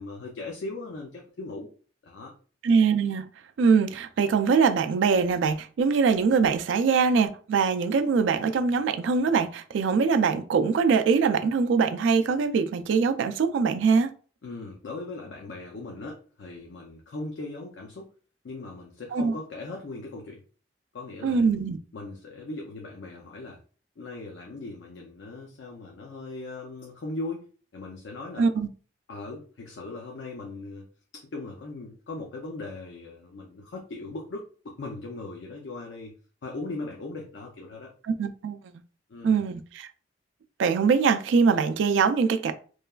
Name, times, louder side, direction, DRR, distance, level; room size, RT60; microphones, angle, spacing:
voice 1, 0.0-1.7 2.0-2.3 14.4-18.1 18.4-20.4 20.9-21.5 21.9-23.6 24.0-27.4 27.7-28.5 29.1-30.9 31.1-36.1 36.4-37.9 39.1-39.4, left 2 dB, 75° left, 0.5 m, -39 dB
voice 2, 2.6-3.2 3.6-14.1 19.1-19.3 21.2-21.8 28.4-28.7 38.1-38.6 39.2-39.9 40.6-42.5, right 5 dB, 90° right, 0.3 m, -23 dB
3.0 x 2.3 x 2.2 m
head